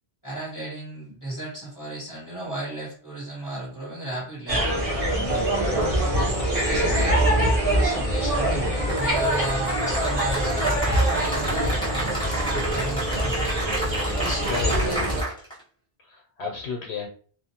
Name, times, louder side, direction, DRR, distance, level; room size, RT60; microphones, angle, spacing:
voice 1, 0.2-4.8 6.5-7.5 7.8-13.4 14.2-15.0, right 1 dB, 20° right, -6 dB, 1.4 m, -35 dB
sound 1, 4.5-15.2, right 1 dB, 35° right, 0.9 m, -24 dB
Cheering / Applause, 8.9-15.6, right 1 dB, 5° left, 1.0 m, -31 dB
voice 2, 14.5-15.1 16.0-17.1, left 5 dB, 80° left, 1 dB, 0.8 m, -32 dB
2.5 x 2.2 x 2.8 m, 0.43 s
omnidirectional pair, 1.1 m